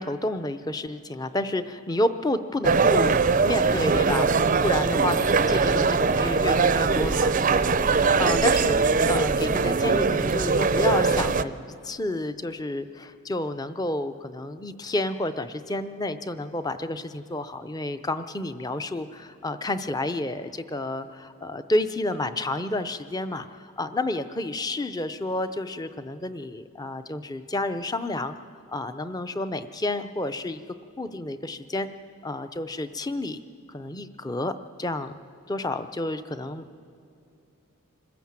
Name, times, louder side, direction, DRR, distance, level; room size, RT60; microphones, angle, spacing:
voice 1, 0.0-3.2 3.4-4.3 4.6-7.3 8.2-28.4 28.7-30.6 31.0-31.9 32.2-33.4 33.7-34.5 34.8-35.1 35.5-36.6, left 2 dB, 15° left, 10 dB, 0.6 m, -30 dB
sound 1, 2.6-11.4, right 4 dB, 35° right, 0.5 m, -21 dB
26.0 x 15.5 x 7.4 m, 2.5 s
head